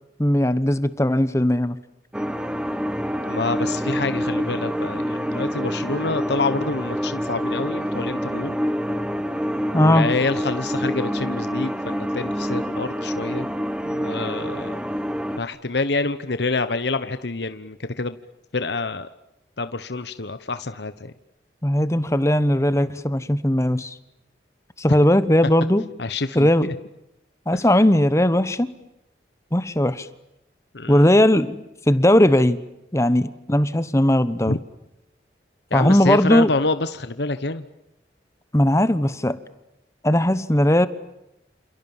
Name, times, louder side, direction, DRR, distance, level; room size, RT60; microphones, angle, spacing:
voice 1, 0.2-1.8 9.7-10.1 21.6-24.0 24.8-25.8 26.3-26.7 27.5-28.7 29.5-30.1 30.9-32.6 32.9-34.5 35.7-36.5 38.5-39.4 40.0-40.9, left 1 dB, 15° left, 14 dB, 1.1 m, -18 dB
sound 1, 2.1-15.4, equal, 5° right, 1.3 m, -27 dB
voice 2, 3.3-8.6 9.7-13.5 13.8-14.8 15.4-18.2 18.5-19.1 19.6-21.1 26.0-26.8 27.5-27.7 30.7-31.1 34.5-34.6 35.7-37.6, left 3 dB, 75° left, 11 dB, 1.1 m, -27 dB
29.0 x 28.5 x 7.3 m, 0.86 s
head